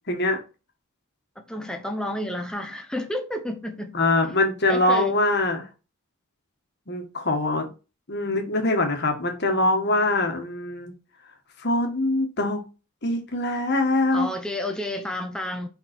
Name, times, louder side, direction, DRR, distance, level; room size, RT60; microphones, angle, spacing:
voice 1, 0.1-0.4 3.9-5.7 6.9-7.7 8.1-10.9 11.6-12.6 13.0-14.3, left 2 dB, 50° left, 1.6 m, -23 dB
voice 2, 1.5-4.0 4.7-5.2 14.1-15.7, left 1 dB, 5° left, 0.9 m, -30 dB
5.5 x 5.2 x 4.4 m
head